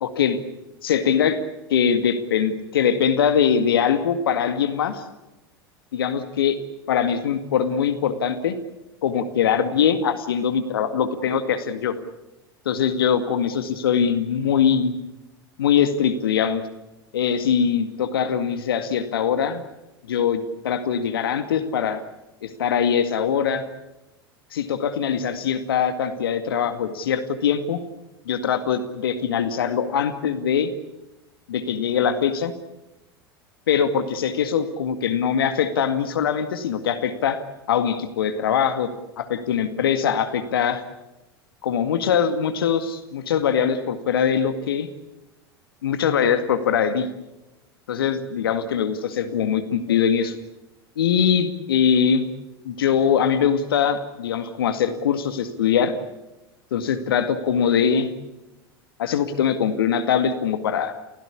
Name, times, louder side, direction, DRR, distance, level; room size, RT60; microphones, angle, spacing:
voice 1, 0.0-0.4 0.8-1.4 1.7-5.0 5.9-6.6 6.9-8.6 9.0-11.9 12.7-15.0 15.6-16.6 17.1-19.6 20.1-22.0 22.4-23.7 24.5-27.8 28.3-30.7 31.5-32.5 33.7-37.4 37.7-38.9 39.2-40.8 41.6-44.9 45.8-47.1 47.9-50.4 51.0-52.3 52.6-56.0 56.7-58.1 59.0-60.9, left 7 dB, 70° left, 9 dB, 2.0 m, -22 dB
29.0 x 17.0 x 8.5 m, 0.97 s
figure-of-eight pair, 85°, 13 cm